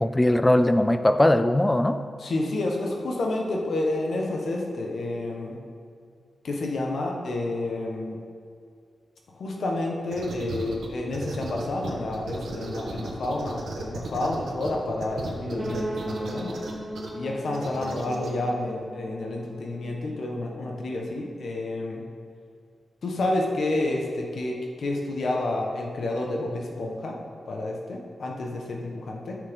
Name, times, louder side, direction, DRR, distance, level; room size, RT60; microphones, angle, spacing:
voice 1, 0.0-2.0, left 1 dB, 10° left, 10 dB, 0.3 m, -20 dB
voice 2, 2.2-5.6 6.4-8.2 9.4-16.6 17.1-22.0 23.0-27.2 27.5-29.4, left 2 dB, 60° left, 0 dB, 1.2 m, -29 dB
sound 1, 10.1-10.9 11.1-14.7 15.0-17.1 17.5-18.3, right 3 dB, 80° right, 1.3 m, -35 dB
sound 2, 15.6-21.5, right 1 dB, 15° right, 0.9 m, -38 dB
13.5 x 6.4 x 3.7 m, 2.3 s
wide cardioid pair, 165°, 0 cm